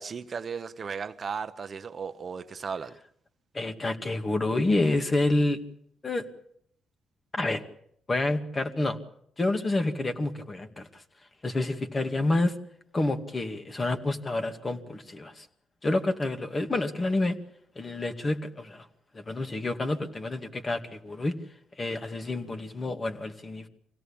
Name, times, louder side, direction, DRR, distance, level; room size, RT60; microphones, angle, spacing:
voice 1, 0.0-3.0, right 6 dB, 40° right, 1.0 m, -36 dB
voice 2, 3.5-5.6 6.0-6.2 7.3-7.6 8.1-9.0 9.4-10.9 11.4-12.5 12.9-15.5 15.8-17.4 17.8-18.8 19.1-21.3 21.8-23.7, left 2 dB, 25° left, 2.2 m, -28 dB
25.5 x 17.0 x 8.7 m
cardioid pair, 90°, 0 cm